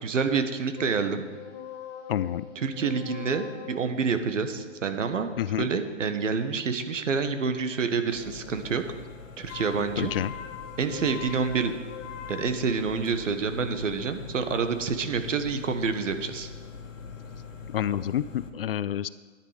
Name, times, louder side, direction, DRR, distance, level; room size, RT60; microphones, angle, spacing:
voice 1, 0.0-1.2 2.5-5.3 5.6-8.8 9.4-10.1 10.8-11.7 12.3-16.5, right 5 dB, 75° right, 8 dB, 1.5 m, -28 dB
sound 1, 0.8-6.1 9.5-13.4, left 9 dB, 25° left, 1.6 m, -43 dB
voice 2, 2.1-2.5 5.4-5.7 10.0-10.3 17.7-19.1, left 10 dB, 50° left, 17 dB, 0.4 m, -28 dB
sound 2, 8.1-18.5, left 5 dB, 80° left, 1.4 m, -43 dB
11.0 x 10.0 x 5.0 m, 1.4 s
hypercardioid pair, 135°, 38 cm